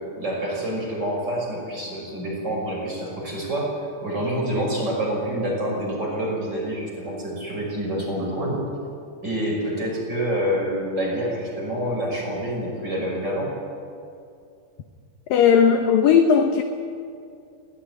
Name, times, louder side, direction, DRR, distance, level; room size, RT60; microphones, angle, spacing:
voice 1, 0.2-3.7 4.0-8.6 9.2-13.5, equal, 25° right, -2 dB, 6.2 m, -27 dB
voice 2, 15.3-16.6, left 7 dB, 70° left, 6 dB, 2.2 m, -16 dB
20.0 x 17.0 x 9.9 m, 2.4 s
omnidirectional pair, 5.0 m